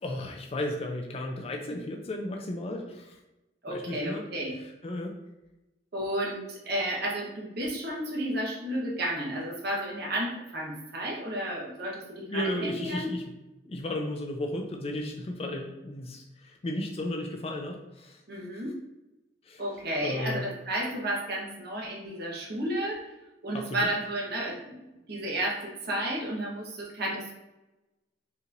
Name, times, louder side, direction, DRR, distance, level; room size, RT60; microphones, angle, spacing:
voice 1, 0.0-3.2 3.7-4.2 4.6-5.2 12.3-13.3 13.7-18.2 19.5-19.6 20.0-20.4 23.5-23.9, left 1 dB, 35° left, 2 dB, 0.4 m, -34 dB
voice 2, 3.6-4.5 5.9-13.1 18.3-18.7 19.6-23.1 23.4-24.8 25.1-27.3, right 1 dB, 60° right, -3 dB, 1.1 m, -32 dB
5.5 x 3.1 x 2.5 m, 1.0 s
head